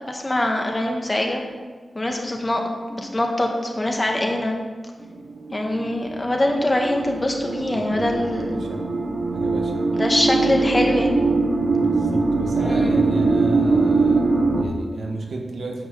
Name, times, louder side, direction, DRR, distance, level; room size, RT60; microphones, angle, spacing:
voice 1, 0.0-1.4 1.9-2.6 2.9-4.6 5.5-8.7 9.9-11.2 12.6-13.1, left 1 dB, 20° left, 1 dB, 1.3 m, -23 dB
sound 1, 5.0-14.6, right 3 dB, 50° right, 1.1 m, -22 dB
voice 2, 7.8-8.9 9.3-9.9 11.8-15.9, right 2 dB, 70° right, 2 dB, 1.4 m, -33 dB
9.7 x 5.3 x 7.2 m, 1.4 s
wide cardioid pair, 150°, 0 cm